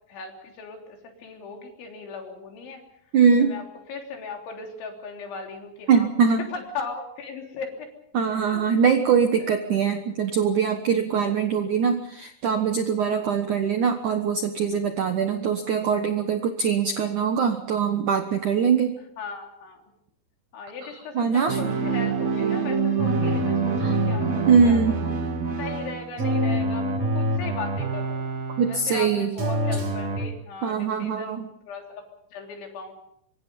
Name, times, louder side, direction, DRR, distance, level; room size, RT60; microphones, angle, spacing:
voice 1, 0.1-2.8 3.4-7.9 8.3-8.7 9.4-9.8 13.1-13.3 19.2-19.8 20.5-25.1 25.6-28.2 28.7-32.9, left 4 dB, 70° left, 2 dB, 5.7 m, -38 dB
voice 2, 3.1-3.5 5.9-6.4 8.1-18.9 21.2-21.6 23.8-23.9 24.5-25.0 28.6-29.3 30.6-31.5, right 6 dB, 75° right, 6 dB, 1.8 m, -22 dB
sound 1, 21.5-29.1 29.4-30.2, right 3 dB, 40° right, 3.0 m, -26 dB
25.5 x 24.5 x 5.4 m, 0.70 s
omnidirectional pair, 5.6 m